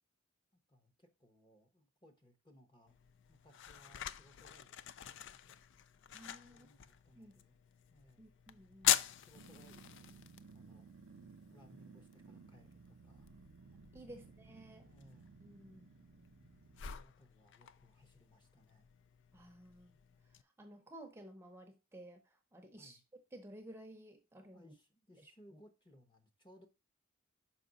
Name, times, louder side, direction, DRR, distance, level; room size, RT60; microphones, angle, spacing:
voice 1, 0.7-2.9 3.3-5.6 6.4-7.6 7.9-8.2 8.8-10.2 10.5-10.9 11.5-13.3 14.0-14.3 14.7-15.4 16.4-18.9 22.8-23.0 24.5-26.7, equal, 20° left, 1.0 m, -65 dB
sound 1, 2.9-20.4, left 11 dB, 60° left, 0.4 m, -43 dB
voice 2, 6.1-6.7 7.2-7.4 8.2-8.9 13.9-14.9 15.4-15.9 19.3-20.0 20.3-23.0 23.3-24.7 25.2-25.6, right 1 dB, 10° right, 0.7 m, -55 dB
Growling, 9.3-17.0, right 5 dB, 70° right, 0.5 m, -58 dB
6.0 x 5.3 x 3.9 m
head